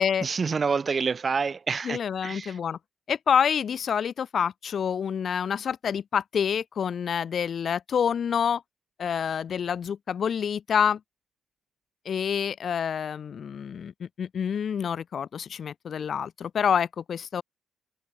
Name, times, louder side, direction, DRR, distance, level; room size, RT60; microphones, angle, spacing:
voice 1, 0.2-2.6, right 5 dB, 35° right, 3.7 m, -28 dB
voice 2, 1.8-2.8 3.1-8.6 9.0-11.0 12.0-17.4, left 7 dB, 55° left, 3.0 m, -27 dB
cardioid pair, 90°, 0 cm